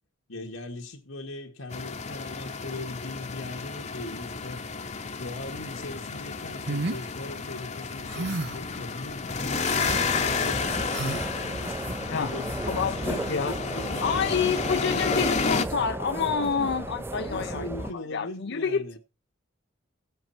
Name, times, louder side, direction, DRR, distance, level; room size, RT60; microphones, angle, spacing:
voice 1, 0.3-4.6 5.1-9.3 9.8-11.3 11.6-15.3 16.4-16.9 17.3-19.0, left 2 dB, 90° left, 2.1 m, -40 dB
sound 1, 1.7-15.6, left 5 dB, 35° left, 0.9 m, -31 dB
sound 2, 6.7-7.0 8.1-8.7 9.6-10.0 10.9-11.3, right 3 dB, 55° right, 0.8 m, -31 dB
sound 3, 9.8-17.9, right 1 dB, 10° right, 0.5 m, -35 dB
voice 2, 12.7-13.6 14.0-18.8, left 6 dB, 55° left, 0.6 m, -28 dB
16.0 x 7.9 x 4.4 m
head